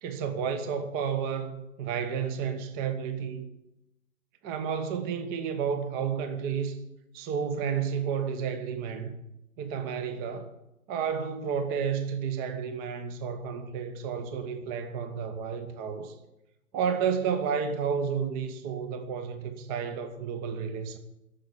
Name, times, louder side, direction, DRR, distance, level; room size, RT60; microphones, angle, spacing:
voice 1, 0.0-3.5 4.4-6.8 7.1-9.2 9.6-10.5 10.9-16.1 16.7-21.0, right 7 dB, 20° right, 1.2 m, -31 dB
13.0 x 7.2 x 9.8 m
figure-of-eight pair, 120°, 42 cm